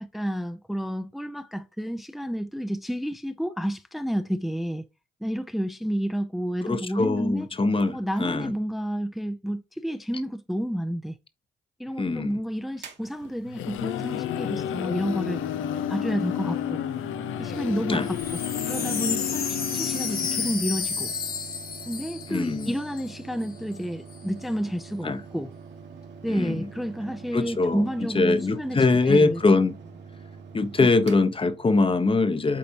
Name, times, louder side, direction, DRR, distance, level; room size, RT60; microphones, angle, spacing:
voice 1, 0.1-4.8 5.2-7.5 7.9-11.1 11.8-15.4 15.9-16.8 17.4-18.4 18.7-21.1 21.9-25.5 26.2-28.8 29.1-29.4, equal, ahead, 0.6 m, -30 dB
voice 2, 6.6-8.5 12.0-12.4 17.9-18.1 22.3-22.7 25.0-25.2 26.3-26.7 27.3-29.8 30.5-32.6, left 3 dB, 25° left, 1.0 m, -23 dB
Mechanical fan, 12.7-32.1, right 5 dB, 60° right, 1.6 m, -45 dB
sound 1, 13.2-20.9, left 11 dB, 75° left, 0.6 m, -31 dB
Wind chime, 17.9-23.2 23.4-23.5 23.7-24.2, left 6 dB, 45° left, 1.4 m, -32 dB
8.6 x 4.0 x 2.9 m
supercardioid pair, 65°, 21 cm